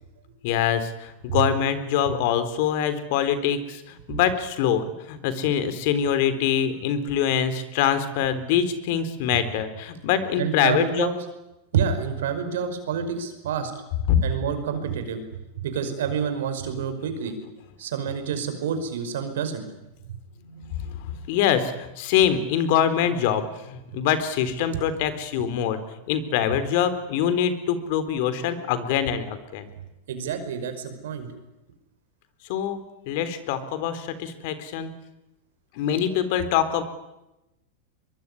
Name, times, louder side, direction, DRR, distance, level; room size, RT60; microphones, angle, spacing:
voice 1, 0.4-11.1 14.1-14.2 20.4-25.8 26.1-29.7 32.5-32.8 33.1-34.9 35.8-36.8, left 9 dB, 60° left, 12 dB, 3.8 m, -24 dB
voice 2, 10.4-11.1 11.7-13.7 14.2-15.2 15.6-17.4 17.8-19.7 20.1-20.2 24.7-24.8 30.1-31.3, right 7 dB, 80° right, 9 dB, 5.3 m, -28 dB
23.5 x 22.5 x 9.9 m, 0.94 s
hypercardioid pair, 115°, 0 cm